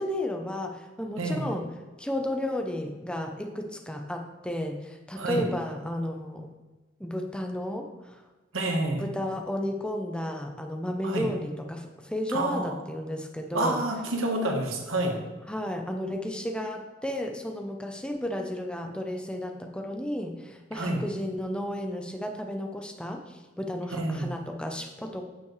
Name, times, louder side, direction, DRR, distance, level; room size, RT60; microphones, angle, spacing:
voice 1, 0.0-1.7 2.0-6.5 7.0-8.2 8.9-13.8 14.4-14.6 15.5-25.2, left 1 dB, 5° left, 3 dB, 0.6 m, -33 dB
voice 2, 1.2-1.5 5.1-5.4 8.5-9.1 11.0-11.3 12.3-12.8 13.5-15.2 20.7-21.0 23.9-24.3, right 2 dB, 80° right, 2 dB, 1.4 m, -28 dB
8.6 x 6.9 x 3.2 m, 1.2 s
head